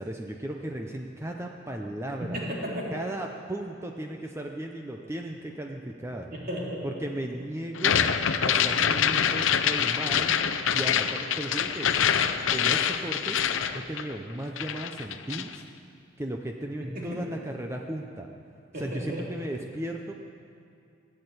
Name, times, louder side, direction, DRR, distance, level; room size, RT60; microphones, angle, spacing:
voice 1, 0.0-2.4 2.9-6.3 6.8-8.0 8.4-10.4 10.7-11.9 12.5-13.4 13.7-15.6 16.2-18.3 18.8-20.1, right 1 dB, 15° right, 2 dB, 0.7 m, -35 dB
voice 2, 2.2-2.9 6.3-6.9 16.8-17.0 18.7-19.2, equal, 50° right, -4 dB, 3.3 m, -34 dB
sound 1, 7.7-14.3 14.6-15.5, left 8 dB, 90° left, 0.6 m, -25 dB
16.0 x 8.9 x 8.1 m, 2.5 s
head